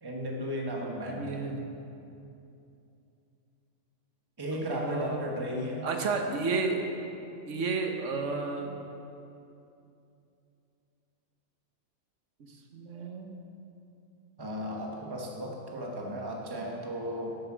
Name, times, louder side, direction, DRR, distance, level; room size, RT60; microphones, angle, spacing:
voice 1, 0.0-1.5 4.4-5.9 14.4-17.4, equal, 20° right, -1 dB, 1.1 m, -35 dB
voice 2, 1.1-1.6 4.5-5.2 5.8-6.8 7.5-8.7 12.7-13.4, right 4 dB, 65° right, 4 dB, 1.2 m, -32 dB
8.4 x 7.9 x 6.1 m, 2.7 s
omnidirectional pair, 1.4 m